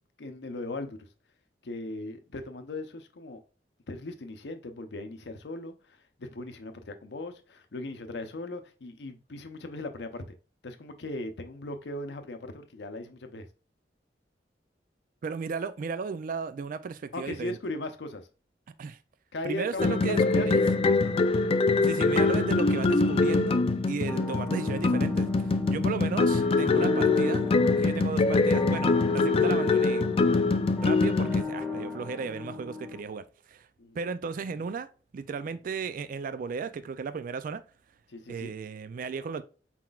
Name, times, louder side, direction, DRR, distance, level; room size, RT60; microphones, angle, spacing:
voice 1, 0.2-1.0 1.6-3.4 3.9-10.3 10.6-13.5 17.1-18.3 19.3-21.2 33.8-34.0 38.1-38.5, left 2 dB, 70° left, 0.6 m, -38 dB
voice 2, 15.2-17.6 18.8-19.0 19.4-20.6 21.8-27.5 27.8-30.0 30.8-33.7 34.0-34.9 35.1-37.6 38.3-39.4, right 5 dB, 50° right, 0.3 m, -35 dB
sound 1, 19.8-31.4, left 3 dB, 35° left, 0.3 m, -24 dB
sound 2, 24.1-33.0, left 3 dB, ahead, 1.0 m, -36 dB
4.3 x 3.9 x 2.3 m
head